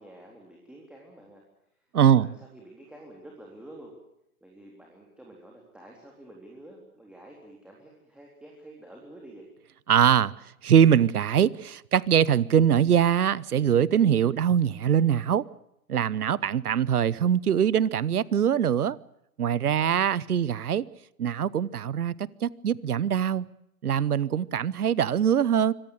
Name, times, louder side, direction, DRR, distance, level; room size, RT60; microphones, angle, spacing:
voice 1, 0.0-1.4 2.1-3.9 4.4-9.5, right 1 dB, ahead, 3.7 m, -49 dB
voice 2, 1.9-2.3 9.9-10.3 10.6-15.4 15.9-19.0 19.4-20.8 21.2-22.1 22.4-23.4 23.8-25.7, right 9 dB, 85° right, 1.0 m, -22 dB
25.0 x 18.0 x 8.1 m
hypercardioid pair, 130°, 44 cm